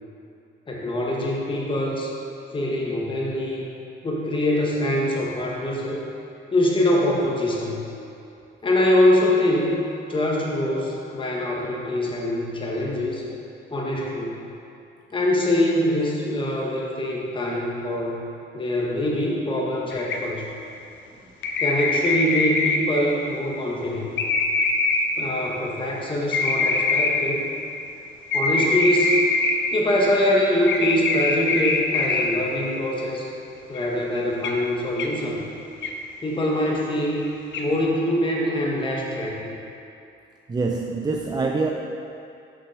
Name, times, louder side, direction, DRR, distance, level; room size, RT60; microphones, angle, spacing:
voice 1, 0.7-2.1 2.5-3.7 4.0-6.0 6.5-7.8 8.6-9.8 10.1-13.2 13.7-14.4 15.1-18.2 18.5-20.5 21.6-24.2 25.2-27.5 28.3-29.2 29.7-33.3 33.7-35.4 36.2-39.5, left 1 dB, 25° left, -3 dB, 1.2 m, -24 dB
sound 1, 19.9-20.5 21.4-23.0 24.2-25.3 26.3-27.4 28.3-29.9 30.7-32.4 33.8-33.9 34.4-34.6 35.0-35.2 35.8-36.0 37.2-37.3 37.5-37.7, left 3 dB, 70° left, 0.7 m, -23 dB
voice 2, 40.5-41.7, right 3 dB, 20° right, 1 dB, 0.5 m, -25 dB
6.1 x 5.9 x 4.8 m, 2.6 s
cardioid pair, 90°, 20 cm